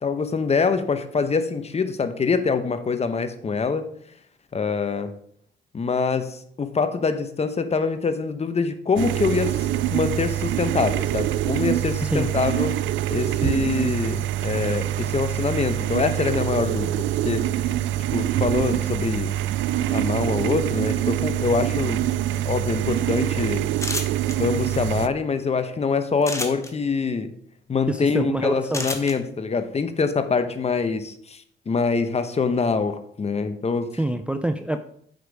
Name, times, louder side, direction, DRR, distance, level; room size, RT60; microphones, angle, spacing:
voice 1, 0.0-3.9 4.5-5.1 5.7-12.8 13.1-17.5 18.1-19.3 19.9-22.1 22.4-23.6 24.4-27.3 27.7-33.9, left 5 dB, 30° left, 10 dB, 0.9 m, -25 dB
sound 1, 9.0-25.1, right 13 dB, 75° right, 0.4 m, -25 dB
sound 2, 23.8-24.3 26.2-26.7 28.7-29.1, left 2 dB, 15° left, 1.3 m, -29 dB
voice 2, 27.9-28.9 34.0-34.8, right 1 dB, 5° right, 8 dB, 0.5 m, -25 dB
7.9 x 5.2 x 4.7 m, 0.64 s
cardioid pair, 90°, 20 cm